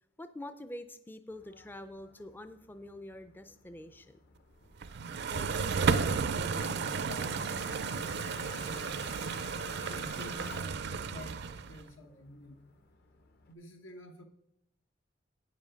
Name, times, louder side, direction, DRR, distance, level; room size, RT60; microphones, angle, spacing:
voice 1, 0.2-4.2, left 1 dB, 10° left, 10 dB, 0.4 m, -46 dB
Toilet flush, 1.3-13.5, left 5 dB, 55° left, 0.8 m, -53 dB
sound 1, 4.8-11.8, right 5 dB, 60° right, 0.5 m, -33 dB
voice 2, 5.3-9.0 9.7-12.6 13.5-14.2, equal, 90° left, 5 dB, 1.3 m, -49 dB
9.1 x 7.4 x 5.1 m, 0.85 s
head